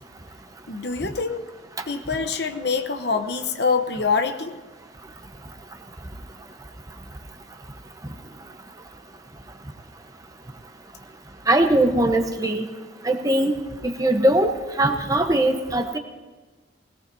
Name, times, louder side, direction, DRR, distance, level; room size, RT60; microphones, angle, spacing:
voice 1, 0.7-1.4 1.9-4.6, left 5 dB, 60° left, 7 dB, 0.9 m, -25 dB
voice 2, 11.5-12.7 13.0-13.5 13.8-16.0, right 1 dB, 20° right, 5 dB, 0.9 m, -20 dB
20.5 x 17.0 x 2.7 m, 1.3 s
head